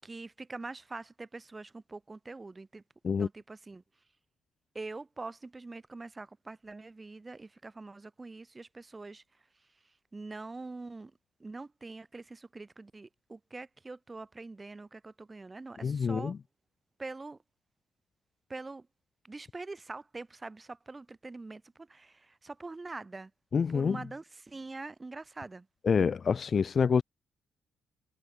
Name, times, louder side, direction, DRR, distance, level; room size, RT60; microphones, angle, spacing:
voice 1, 0.0-2.8 3.2-3.8 4.7-9.2 10.1-11.1 11.4-16.3 17.0-17.4 18.5-18.9 19.2-23.3 23.7-25.7, right 3 dB, 20° right, 7.4 m, -44 dB
voice 2, 15.8-16.4 23.5-24.0 25.8-27.0, left 6 dB, 45° left, 0.5 m, -27 dB
cardioid pair, 90°, 0 cm